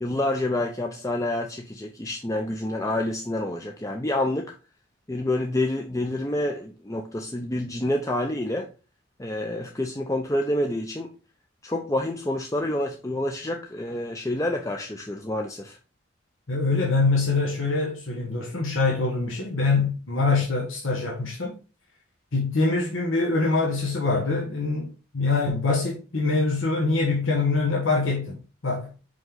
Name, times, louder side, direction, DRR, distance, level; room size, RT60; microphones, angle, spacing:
voice 1, 0.0-4.5 5.1-8.7 9.2-11.1 11.6-15.8, left 1 dB, 15° left, 0.5 m, -28 dB
voice 2, 16.5-21.6 22.3-24.9 25.1-28.9, left 3 dB, 85° left, 1.5 m, -24 dB
5.3 x 5.3 x 3.8 m
head